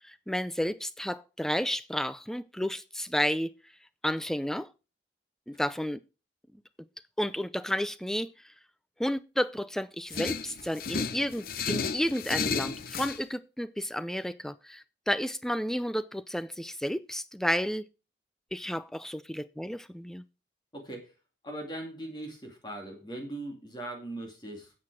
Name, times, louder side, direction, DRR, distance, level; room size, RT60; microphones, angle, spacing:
voice 1, 0.1-3.5 4.0-4.7 5.5-6.0 7.2-8.3 9.0-17.8 18.5-20.2, equal, 5° left, 0.5 m, -31 dB
sound 1, 10.1-13.2, left 5 dB, 55° left, 0.8 m, -33 dB
voice 2, 20.7-21.1 21.4-24.7, right 1 dB, 25° left, 2.5 m, -40 dB
10.5 x 7.8 x 4.8 m
head